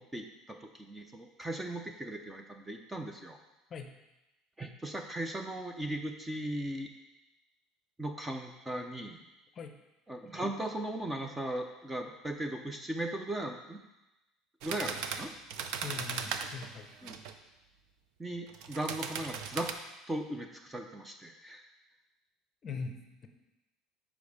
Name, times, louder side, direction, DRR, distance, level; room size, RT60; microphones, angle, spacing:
voice 1, 0.0-3.4 4.6-6.9 8.0-9.2 10.1-13.8 14.6-15.3 17.0-17.2 18.2-19.7 20.1-21.6, right 1 dB, 10° right, 4 dB, 0.5 m, -38 dB
sound 1, 14.6-17.4 18.5-19.7, right 6 dB, 65° right, 0.5 m, -38 dB
voice 2, 15.8-16.9 22.6-23.3, left 5 dB, 30° left, 6 dB, 0.6 m, -41 dB
5.2 x 5.0 x 6.4 m, 0.98 s
cardioid pair, 155°, 0 cm